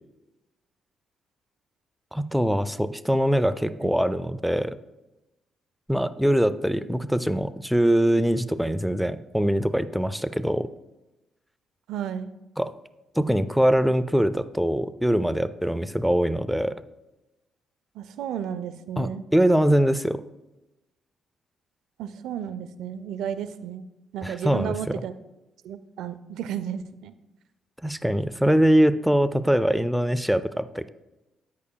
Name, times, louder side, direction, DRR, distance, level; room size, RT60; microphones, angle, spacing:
voice 1, 2.1-4.7 5.9-10.7 12.6-12.7 13.2-16.7 19.0-20.2 24.2-24.9 27.8-30.9, equal, ahead, 13 dB, 0.3 m, -23 dB
voice 2, 11.9-12.3 18.0-19.2 22.0-23.9 24.1-25.1 25.6-27.1, right 9 dB, 80° right, 13 dB, 0.4 m, -33 dB
9.6 x 8.3 x 2.2 m, 0.97 s
cardioid pair, 90°, 0 cm